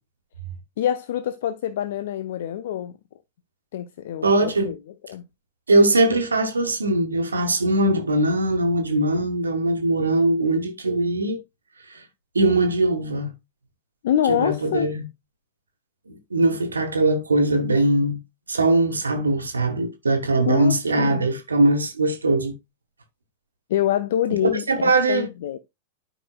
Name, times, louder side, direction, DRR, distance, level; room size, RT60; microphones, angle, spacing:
voice 1, 0.8-3.0 3.7-4.8 5.1-5.2 14.0-14.9 20.5-21.2 23.7-25.6, left 11 dB, 55° left, 0.5 m, -26 dB
voice 2, 4.2-4.7 5.7-11.4 11.9-12.0 12.3-13.3 14.3-15.0 16.3-18.2 18.5-22.5 24.5-25.3, right 2 dB, 75° right, 1.2 m, -21 dB
12.5 x 5.0 x 2.3 m
figure-of-eight pair, 90°, 0 cm